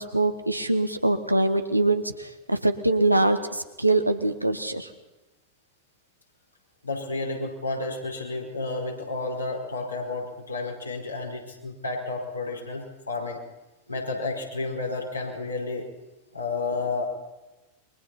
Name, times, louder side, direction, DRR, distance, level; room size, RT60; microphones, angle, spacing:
voice 1, 0.0-4.9, right 2 dB, 85° right, 8 dB, 1.6 m, -23 dB
voice 2, 6.8-13.4 13.9-15.9 16.3-17.0, left 3 dB, 80° left, -1 dB, 5.0 m, -31 dB
29.0 x 23.0 x 4.4 m, 1.1 s
figure-of-eight pair, 90°, 0 cm